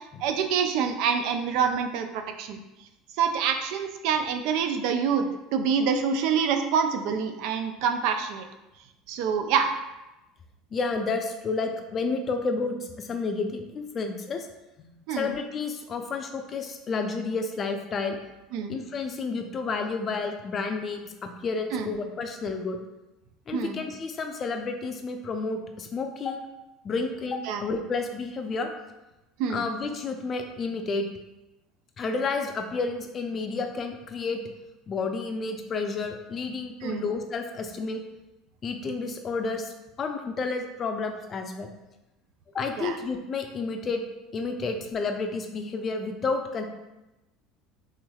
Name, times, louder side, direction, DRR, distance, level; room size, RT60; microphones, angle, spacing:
voice 1, 0.2-2.6 3.2-5.3 5.5-8.4 9.1-9.7 15.1-15.3 18.5-18.8 21.7-21.9 23.5-23.8 27.5-27.6 29.4-29.6 36.8-37.0 42.8-43.0, right 6 dB, 70° right, 6 dB, 0.3 m, -26 dB
voice 2, 10.7-14.5 15.1-18.2 18.7-22.8 23.5-26.4 26.8-28.7 29.5-31.0 32.0-34.4 34.9-38.0 38.6-41.7 42.5-44.0 44.3-46.6, left 4 dB, 35° left, 5 dB, 0.4 m, -30 dB
3.1 x 3.1 x 2.3 m, 0.98 s
hypercardioid pair, 85°, 0 cm